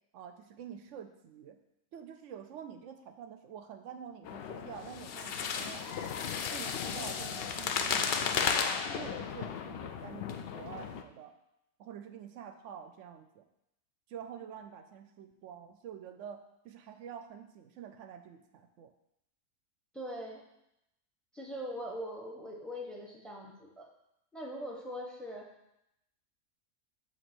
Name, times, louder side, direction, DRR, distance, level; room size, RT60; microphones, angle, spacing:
voice 1, 0.1-1.6 1.9-8.6 8.9-11.3 11.8-13.5 14.1-18.9, right 8 dB, 70° right, 8 dB, 0.8 m, -47 dB
sound 1, 4.2-11.0, left 7 dB, 85° left, 0.5 m, -34 dB
voice 2, 19.9-20.4 21.3-23.9 24.3-25.5, equal, ahead, 0 dB, 0.7 m, -41 dB
7.4 x 2.8 x 6.0 m, 0.83 s
omnidirectional pair, 1.6 m